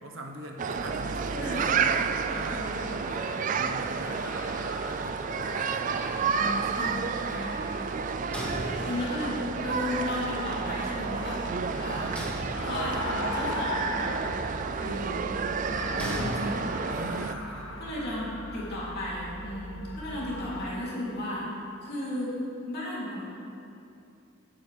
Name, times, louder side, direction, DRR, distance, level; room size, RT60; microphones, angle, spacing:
voice 1, 0.0-3.2 3.5-4.5 4.9-6.3 16.9-18.0, right 1 dB, 70° right, 2 dB, 1.1 m, -41 dB
sound 1, 0.6-17.3, right 6 dB, 35° right, 0.3 m, -31 dB
sound 2, 0.8-20.7, left 1 dB, 80° left, 1.4 m, -39 dB
voice 2, 1.3-1.7 2.5-2.8 6.2-7.7 8.3-11.4 11.8-12.2 12.6-14.1 14.4-15.2 15.7-16.6 17.8-21.5 21.8-22.4 22.7-23.3, left 1 dB, 50° left, -6 dB, 3.0 m, -35 dB
sound 3, 8.3-9.4 12.2-13.2 16.0-17.1, equal, 5° left, 1.3 m, -37 dB
16.0 x 9.2 x 3.4 m, 2.6 s
head